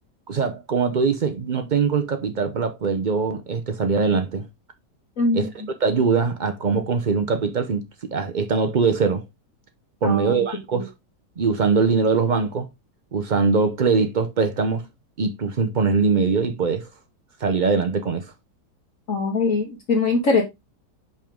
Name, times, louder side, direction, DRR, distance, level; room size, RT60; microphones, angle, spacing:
voice 1, 0.3-4.5 5.3-5.5 5.8-9.2 10.0-10.9 11.4-12.7 13.1-14.9 15.2-16.9 17.4-18.3, right 5 dB, 90° right, 0.4 m, -22 dB
voice 2, 5.2-5.5 10.0-10.4 10.7-10.8 19.1-20.4, left 3 dB, 50° left, 1.6 m, -22 dB
5.5 x 5.2 x 3.6 m
omnidirectional pair, 1.9 m